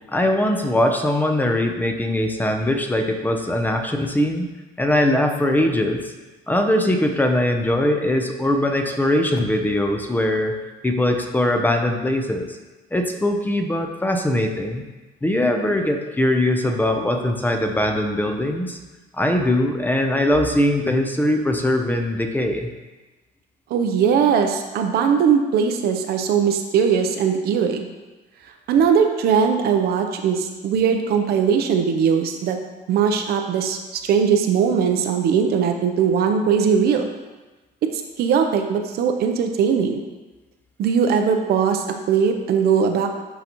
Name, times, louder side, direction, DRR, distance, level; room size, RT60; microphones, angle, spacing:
voice 1, 0.1-4.5 4.8-6.1 6.5-10.6 10.8-12.6 12.9-14.8 15.2-18.8 19.2-22.7, left 1 dB, 10° left, 4 dB, 0.7 m, -21 dB
voice 2, 23.7-27.9 28.7-32.6 32.9-37.1 37.9-40.0 40.8-43.2, right 6 dB, 70° right, 5 dB, 0.7 m, -20 dB
11.0 x 4.0 x 3.0 m, 1.2 s
cardioid pair, 110°, 17 cm